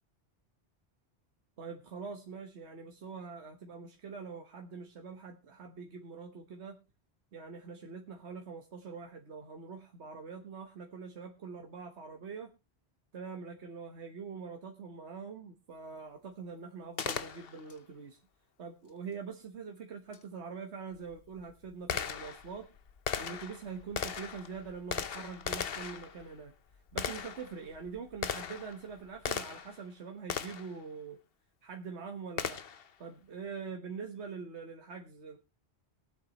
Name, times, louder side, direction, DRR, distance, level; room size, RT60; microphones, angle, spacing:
voice 1, 1.6-6.8 7.3-12.5 13.1-18.2 18.6-22.7 23.2-26.5 26.9-31.2 31.6-32.6 33.0-35.4, right 5 dB, 85° right, 3 dB, 1.6 m, -44 dB
Gunshot gunfire, 17.0-17.8 20.1-20.2 20.9-29.8 30.3-30.8 32.4-32.9, left 7 dB, 65° left, 1.1 m, -38 dB
22.5 x 8.1 x 3.0 m, 0.28 s
omnidirectional pair, 1.1 m